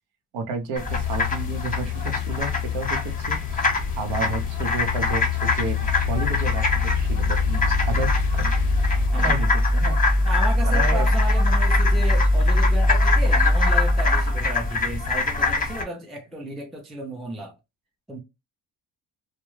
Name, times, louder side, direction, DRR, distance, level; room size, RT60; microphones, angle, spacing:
voice 1, 0.3-3.7 4.0-8.5 9.2-10.0 10.6-11.1, right 3 dB, 85° right, 0.8 m, -31 dB
sound 1, 0.7-15.8, left 3 dB, 20° left, 0.8 m, -26 dB
sound 2, 0.9-9.1, left 21 dB, 60° left, 0.5 m, -29 dB
sound 3, 5.8-14.9, left 1 dB, 45° right, 0.6 m, -22 dB
voice 2, 9.1-9.5 10.2-17.6 18.1-18.2, right 1 dB, ahead, 0.4 m, -34 dB
2.2 x 2.1 x 3.1 m
cardioid pair, 85°, 45 cm